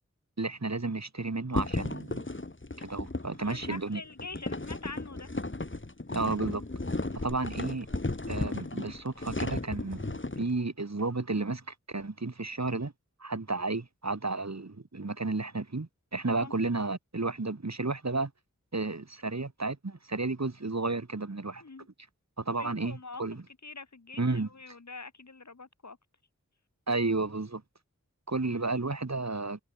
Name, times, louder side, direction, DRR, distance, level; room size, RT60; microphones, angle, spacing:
voice 1, 0.4-2.3 2.8-4.0 6.1-6.6 7.2-7.9 8.3-12.9 13.2-18.3 18.7-21.6 22.4-23.4 24.2-24.5 26.9-27.6 28.3-29.6, right 3 dB, 60° right, 6.9 m, -32 dB
sound 1, 1.5-10.5, left 2 dB, 40° left, 5.2 m, -35 dB
voice 2, 3.4-5.3 16.3-16.5 21.6-21.9 22.5-23.2 23.6-26.0, left 4 dB, 65° left, 2.7 m, -44 dB
wide cardioid pair, 55°, 30 cm